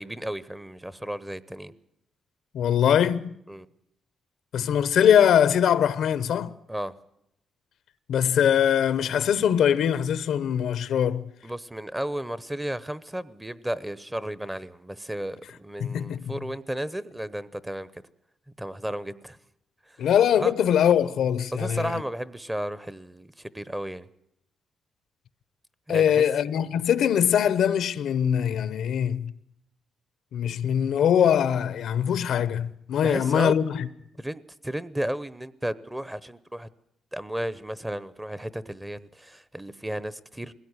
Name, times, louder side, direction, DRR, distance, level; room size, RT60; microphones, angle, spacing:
voice 1, 0.0-1.7 3.5-3.7 6.7-6.9 11.4-18.0 18.6-19.4 19.9-20.0 20.4-20.5 21.5-24.1 25.9-26.2 33.0-33.5 34.2-36.7 37.1-40.5, right 1 dB, 10° right, 0.9 m, -33 dB
voice 2, 2.5-3.3 4.5-6.5 8.1-11.3 15.8-16.4 20.0-22.0 25.9-29.3 30.3-33.9, left 9 dB, 80° left, 0.8 m, -22 dB
21.0 x 16.5 x 9.7 m
cardioid pair, 105°, 0 cm